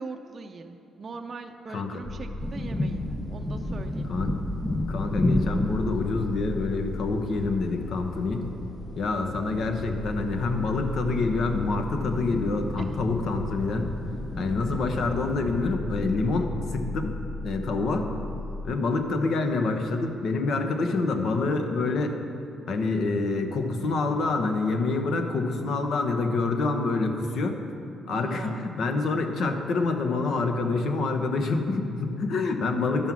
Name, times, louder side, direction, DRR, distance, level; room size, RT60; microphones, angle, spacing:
voice 1, 0.0-4.1 12.8-13.0 28.1-28.7, right 4 dB, 40° right, 5 dB, 0.5 m, -40 dB
sound 1, 2.0-18.7, left 2 dB, 35° left, 0.8 m, -37 dB
sound 2, 2.4-15.7, left 1 dB, 5° left, 0.7 m, -33 dB
voice 2, 4.9-8.5 8.9-13.9 14.3-17.1 17.4-18.1 18.6-22.2 22.7-27.6 28.1-33.1, left 3 dB, 65° left, 5 dB, 1.0 m, -27 dB
12.0 x 5.5 x 6.1 m, 2.9 s
cardioid pair, 90°, 0 cm